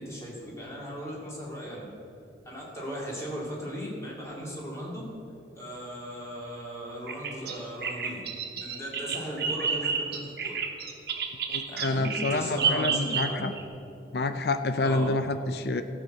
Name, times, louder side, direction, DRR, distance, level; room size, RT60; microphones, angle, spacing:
voice 1, 0.0-1.9 2.4-5.0 5.5-8.2 8.5-10.6 11.7-13.5 14.8-15.1, equal, 15° left, -4 dB, 2.4 m, -37 dB
Bird vocalization bird call bird song, 7.1-13.6, right 6 dB, 60° right, 1.1 m, -30 dB
voice 2, 11.5-13.5 14.1-15.8, left 2 dB, 65° left, 9 dB, 0.5 m, -28 dB
14.0 x 5.8 x 7.8 m, 2.6 s
head